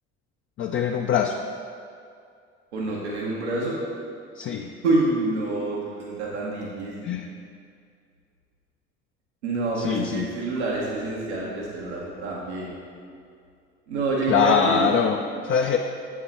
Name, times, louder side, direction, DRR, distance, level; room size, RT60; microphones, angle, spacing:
voice 1, 0.6-1.4 4.4-4.7 7.0-7.3 9.8-10.3 14.3-15.8, left 7 dB, 40° left, 3 dB, 0.4 m, -23 dB
voice 2, 2.7-3.8 4.8-7.1 9.4-12.7 13.9-14.9, right 2 dB, 85° right, -4 dB, 1.0 m, -27 dB
7.7 x 4.6 x 4.2 m, 2.3 s
hypercardioid pair, 60°, 34 cm